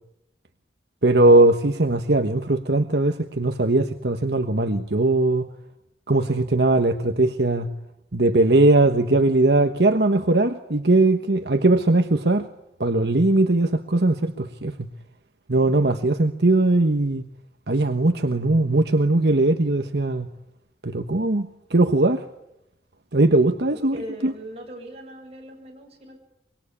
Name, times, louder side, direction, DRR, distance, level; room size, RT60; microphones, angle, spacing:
voice 1, 1.0-5.5 6.1-7.7 8.1-12.5 12.8-14.9 15.5-17.2 17.7-20.3 20.8-22.2 23.1-24.0 24.2-24.3, right 2 dB, 70° right, 7 dB, 1.2 m, -19 dB
voice 2, 23.7-26.2, equal, 35° right, 0 dB, 8.0 m, -39 dB
25.0 x 23.0 x 8.7 m, 0.84 s
head